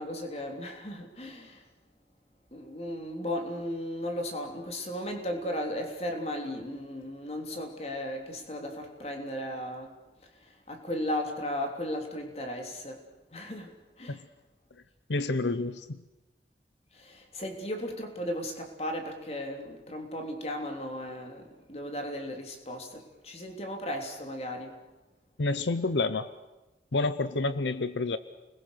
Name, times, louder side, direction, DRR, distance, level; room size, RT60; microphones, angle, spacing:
voice 1, 0.0-1.6 2.5-10.0 10.7-13.0 13.3-14.2 16.9-24.8, left 1 dB, 35° left, 3.3 m, -36 dB
voice 2, 15.1-16.0 25.4-26.3 26.9-28.2, left 3 dB, 85° left, 0.8 m, -28 dB
29.5 x 21.5 x 6.7 m
head